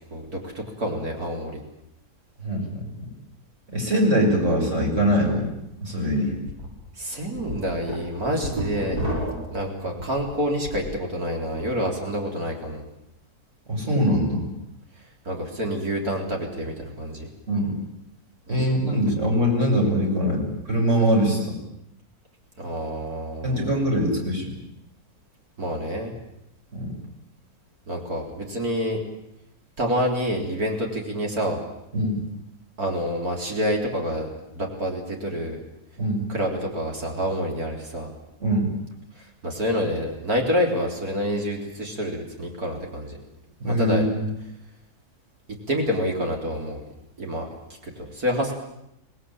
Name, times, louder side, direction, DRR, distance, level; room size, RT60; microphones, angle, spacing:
voice 1, 0.1-1.6 7.0-9.0 9.5-12.8 15.3-17.3 18.5-18.7 22.6-23.8 25.6-26.1 27.9-29.0 29.8-31.6 32.8-35.6 36.3-38.1 39.2-43.2 43.8-44.1 45.7-46.8 47.2-47.5 47.8-48.5, equal, 70° right, 1 dB, 4.3 m, -27 dB
voice 2, 2.4-2.9 3.7-5.5 5.8-6.3 13.7-14.5 17.5-17.8 18.5-21.6 23.4-24.6 26.7-27.0 31.9-32.2 36.0-36.3 38.4-38.7 43.6-44.3, equal, 50° right, 0 dB, 6.7 m, -22 dB
sound 1, 5.8-5.9 6.5-6.7 7.1-10.9 11.3-11.7, equal, 90° right, 7.6 m, -31 dB
25.5 x 19.0 x 8.8 m, 0.82 s
omnidirectional pair, 1.6 m